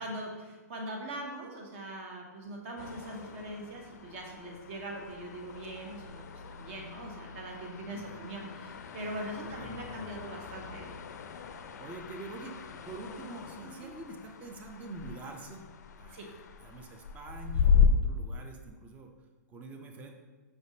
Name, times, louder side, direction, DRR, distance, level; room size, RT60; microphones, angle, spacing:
voice 1, 0.0-10.9 13.8-13.9 16.1-16.2, right 1 dB, 45° right, 1 dB, 0.9 m, -41 dB
sound 1, 2.8-17.9, left 7 dB, 70° left, 0.4 m, -35 dB
voice 2, 7.9-8.3 9.6-9.8 11.8-15.7 16.0-16.2 16.6-19.1 19.5-20.1, right 3 dB, 15° right, 4 dB, 0.4 m, -45 dB
5.0 x 3.3 x 2.7 m, 1.3 s
hypercardioid pair, 145°, 9 cm